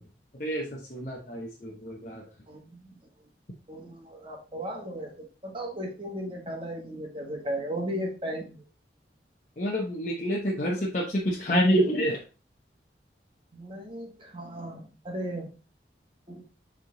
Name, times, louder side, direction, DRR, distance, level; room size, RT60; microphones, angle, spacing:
voice 1, 0.4-2.2 9.6-12.2, equal, 45° left, -2 dB, 1.0 m, -27 dB
voice 2, 2.5-3.0 3.7-8.6 13.5-15.5 16.3-16.4, equal, 30° right, 1 dB, 1.5 m, -36 dB
7.3 x 3.6 x 3.9 m, 0.34 s
head